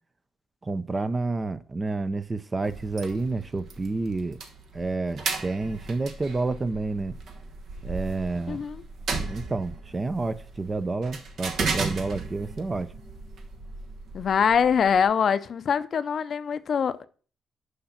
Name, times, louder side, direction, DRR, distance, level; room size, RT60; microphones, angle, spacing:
voice 1, 0.6-4.4 4.7-7.2 7.8-8.6 9.3-12.9, right 3 dB, 25° right, 0.6 m, -29 dB
sound 1, 2.6-15.0, right 4 dB, 65° right, 1.3 m, -36 dB
voice 2, 8.5-8.8 14.1-17.1, left 7 dB, 55° left, 0.6 m, -24 dB
6.5 x 5.7 x 5.8 m
cardioid pair, 90°, 0 cm